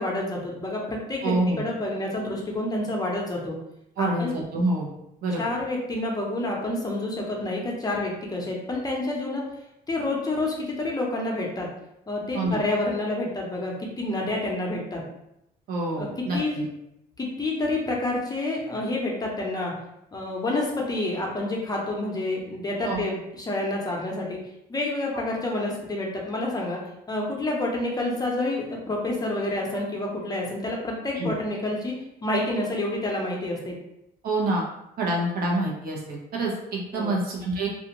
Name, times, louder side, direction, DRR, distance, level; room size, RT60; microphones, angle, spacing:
voice 1, 0.0-3.6 4.0-4.3 5.4-9.4 9.9-11.7 12.1-15.0 16.0-16.1 16.3-16.6 17.2-19.7 20.1-24.4 24.7-26.8 27.1-31.9 32.2-33.8 36.9-37.2, left 2 dB, 20° left, -2 dB, 0.6 m, -28 dB
voice 2, 1.2-1.6 4.0-4.9 5.2-5.4 12.3-12.6 15.7-16.6 22.8-23.0 31.2-31.3 34.2-34.6 35.0-37.7, right 2 dB, 60° right, -2 dB, 0.9 m, -26 dB
2.5 x 2.4 x 2.9 m, 0.81 s
cardioid pair, 110°, 17 cm